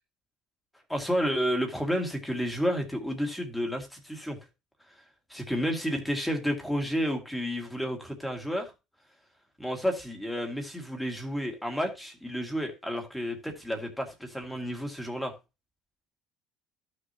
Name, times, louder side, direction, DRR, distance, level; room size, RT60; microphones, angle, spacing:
voice 1, 0.9-4.4 5.3-8.7 9.6-15.3, equal, 5° left, 2.0 m, -31 dB
14.0 x 6.4 x 2.8 m
cardioid pair, 170°, 0 cm